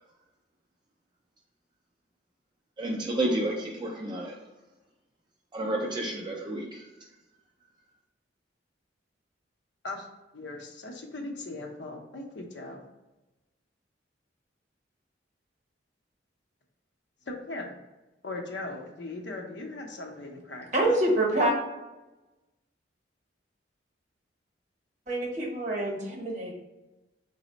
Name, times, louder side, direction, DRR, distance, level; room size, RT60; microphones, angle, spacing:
voice 1, 2.8-4.4 5.5-6.9, right 1 dB, 25° right, -1 dB, 0.3 m, -30 dB
voice 2, 10.3-12.8 17.3-17.8 18.2-20.7, left 2 dB, 65° left, 2 dB, 0.6 m, -39 dB
voice 3, 20.7-21.5 25.1-26.5, right 1 dB, 40° right, -1 dB, 0.9 m, -26 dB
4.1 x 2.0 x 3.9 m, 1.0 s
head